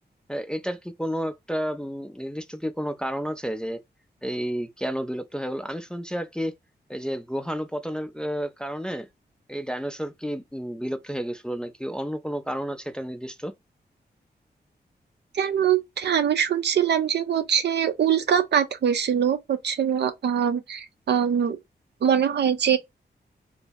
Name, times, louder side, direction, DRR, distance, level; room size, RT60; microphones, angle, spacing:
voice 1, 0.3-3.8 4.2-6.5 6.9-9.1 9.5-13.5, equal, 5° left, 0.3 m, -31 dB
voice 2, 15.3-21.6 22.0-22.8, right 8 dB, 75° right, 0.5 m, -23 dB
2.5 x 2.0 x 3.4 m
wide cardioid pair, 130°, 18 cm